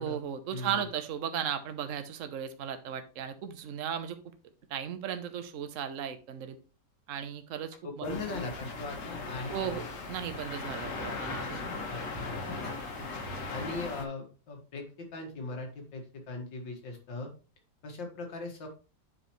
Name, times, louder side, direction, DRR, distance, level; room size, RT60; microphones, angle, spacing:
voice 1, 0.0-4.3 4.7-6.6 7.1-8.1 9.5-11.6, right 9 dB, 55° right, 9 dB, 1.0 m, -36 dB
voice 2, 0.5-0.8 7.8-9.8 11.9-12.8 13.5-17.3 17.8-18.7, left 3 dB, 85° left, 2 dB, 2.5 m, -39 dB
sound 1, 7.7-7.8 8.1-12.7 13.1-13.6, left 6 dB, 50° left, 0.8 m, -51 dB
sound 2, 8.0-14.0, left 3 dB, 65° left, 1.9 m, -38 dB
10.0 x 4.9 x 3.1 m, 0.34 s
omnidirectional pair, 2.0 m